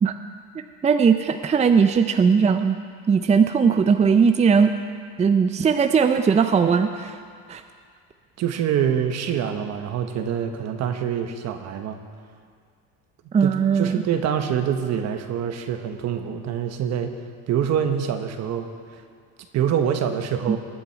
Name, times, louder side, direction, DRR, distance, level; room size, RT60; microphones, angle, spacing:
voice 1, 0.8-2.8 3.1-4.7 5.2-7.2 7.5-7.6 13.3-14.0 20.5-20.6, right 6 dB, 20° right, 8 dB, 0.5 m, -18 dB
voice 2, 8.4-12.0 13.4-17.1 17.5-19.0 19.5-20.6, right 8 dB, 55° right, 7 dB, 1.2 m, -25 dB
20.5 x 7.0 x 4.6 m, 2.1 s
supercardioid pair, 100°, 32 cm